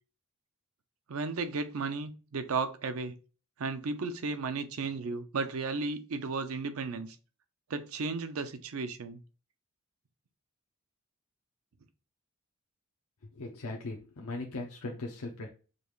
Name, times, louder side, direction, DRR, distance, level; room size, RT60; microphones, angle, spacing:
voice 1, 1.1-3.2 3.6-7.2 7.7-9.2, right 4 dB, 70° right, 0.6 m, -34 dB
voice 2, 13.3-15.5, left 2 dB, 85° left, 0.7 m, -39 dB
5.1 x 2.4 x 3.1 m
head